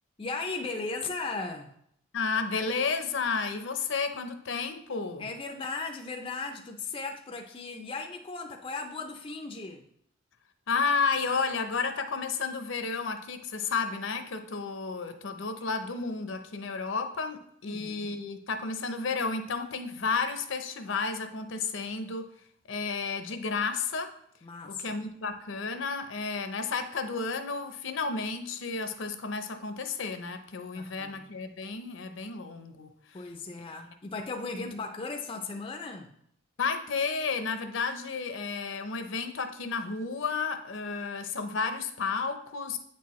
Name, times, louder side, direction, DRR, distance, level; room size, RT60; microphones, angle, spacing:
voice 1, 0.2-1.7 5.2-9.9 17.6-18.1 24.4-25.0 30.7-31.3 33.1-36.1, left 3 dB, 25° left, 3 dB, 0.4 m, -37 dB
voice 2, 2.1-5.3 10.7-22.3 22.7-24.1 24.7-33.3 36.6-42.8, left 4 dB, 65° left, 8 dB, 0.6 m, -32 dB
8.5 x 4.6 x 3.1 m, 0.70 s
head